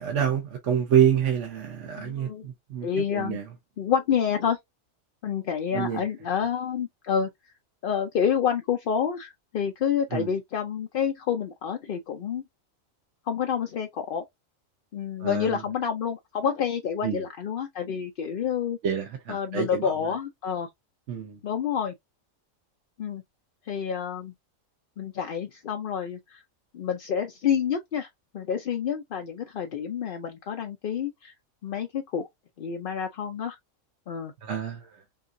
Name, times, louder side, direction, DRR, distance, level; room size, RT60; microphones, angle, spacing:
voice 1, 0.0-2.9 3.1-3.4 5.7-6.0 10.1-10.3 15.2-15.6 17.0-17.2 18.8-19.9 21.1-21.4 34.4-34.9, right 8 dB, 65° right, 1.1 m, -27 dB
voice 2, 2.0-2.5 2.8-3.4 3.8-4.6 5.2-7.3 7.8-12.4 13.3-14.2 14.9-18.8 19.3-20.7 21.4-21.9 23.0-23.2 23.7-24.3 25.0-26.4 26.7-28.1 28.3-31.3 31.6-32.3 32.6-33.6 34.1-34.3, left 7 dB, 55° left, 0.6 m, -28 dB
5.6 x 2.4 x 2.6 m
omnidirectional pair, 1.4 m